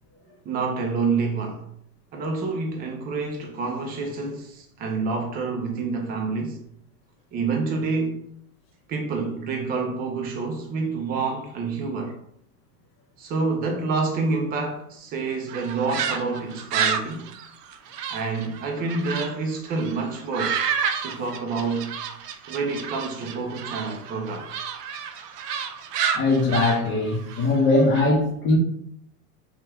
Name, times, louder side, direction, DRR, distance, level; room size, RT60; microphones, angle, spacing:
voice 1, 0.4-1.7 2.1-6.6 7.3-8.2 8.9-12.2 13.2-17.3 18.1-20.6 21.0-22.0 22.5-24.6, right 4 dB, 20° right, 0.4 m, -28 dB
sound 1, 15.5-19.3 19.7-28.0, right 7 dB, 85° right, 0.6 m, -30 dB
voice 2, 26.1-28.6, left 2 dB, 25° left, 0.7 m, -20 dB
2.7 x 2.3 x 3.3 m
hypercardioid pair, 115°, 46 cm